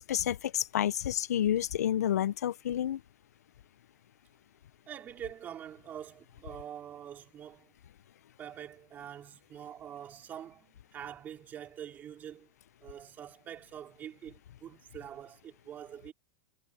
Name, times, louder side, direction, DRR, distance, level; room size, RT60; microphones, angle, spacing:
voice 1, 0.0-3.0, left 11 dB, 90° left, 0.7 m, -29 dB
voice 2, 4.9-7.7 8.4-12.5 12.8-16.1, right 10 dB, 20° right, 4.3 m, -45 dB
supercardioid pair, 160°, 8 cm